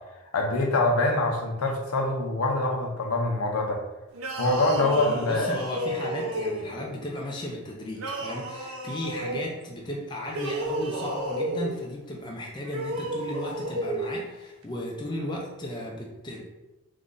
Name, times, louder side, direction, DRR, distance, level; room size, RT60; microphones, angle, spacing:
voice 1, 0.3-3.8 4.4-5.6, left 2 dB, 80° left, 1 dB, 0.6 m, -25 dB
sound 1, 4.1-6.9 7.9-9.5 10.2-11.8 12.6-14.1, right 1 dB, 75° right, 0.6 m, -32 dB
voice 2, 4.5-16.4, left 1 dB, 20° left, -2 dB, 0.4 m, -35 dB
3.1 x 2.6 x 3.7 m, 1.0 s
head